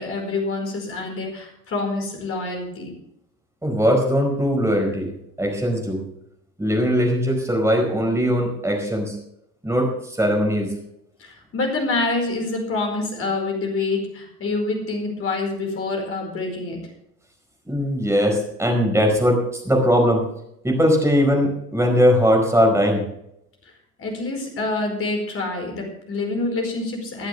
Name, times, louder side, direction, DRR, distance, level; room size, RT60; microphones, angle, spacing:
voice 1, 0.0-3.0 11.2-16.8 24.0-27.3, left 3 dB, 30° left, 2 dB, 4.9 m, -26 dB
voice 2, 3.6-5.1 5.4-6.0 6.6-9.2 9.6-10.7 17.7-20.2 20.6-23.1, equal, 5° right, 1 dB, 4.8 m, -20 dB
20.5 x 11.5 x 3.4 m, 0.78 s
figure-of-eight pair, 80°, 47 cm